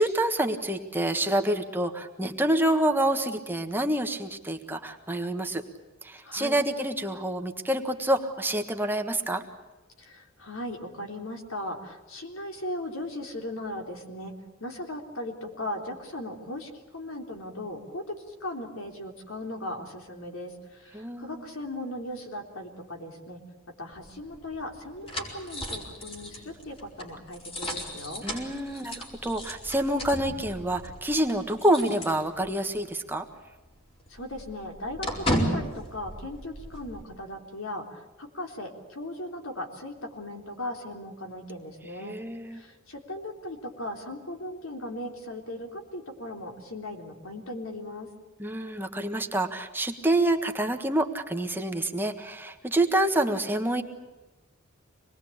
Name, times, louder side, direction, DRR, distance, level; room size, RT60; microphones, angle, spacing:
voice 1, 0.0-5.6 6.0-9.4 20.9-21.4 28.2-33.2 42.0-42.6 48.4-53.8, right 1 dB, 10° right, 5 dB, 1.5 m, -27 dB
voice 2, 6.2-6.6 10.0-14.3 14.6-23.4 23.8-28.3 34.1-42.2 42.5-48.1, left 1 dB, 80° left, 3 dB, 3.6 m, -38 dB
sound 1, 23.9-32.8 33.1-33.2 33.6-37.0, equal, 30° left, 4.7 m, -35 dB
26.0 x 20.5 x 8.7 m, 1.1 s
head